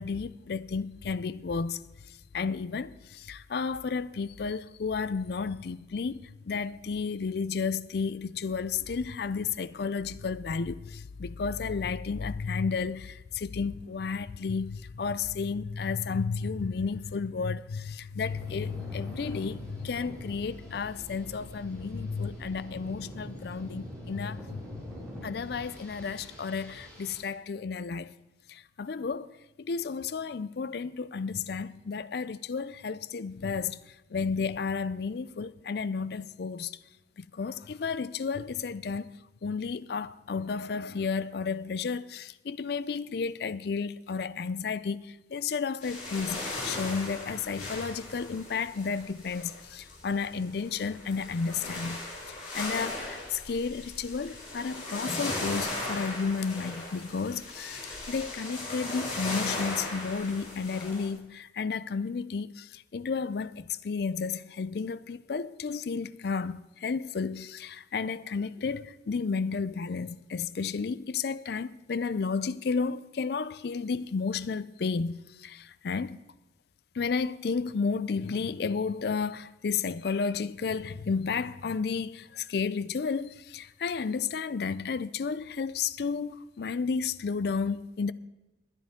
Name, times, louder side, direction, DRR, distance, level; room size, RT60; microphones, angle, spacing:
voice 1, 0.0-1.8 2.1-24.8 25.2-28.1 28.5-29.3 29.6-36.8 37.2-39.1 39.4-52.0 52.3-76.2 76.9-88.1, left 5 dB, 55° left, 0.4 m, -32 dB
sound 1, 18.2-27.2, equal, 5° left, 5.7 m, -44 dB
sound 2, 45.8-61.1, left 2 dB, 40° left, 4.0 m, -38 dB
20.0 x 9.9 x 3.6 m
head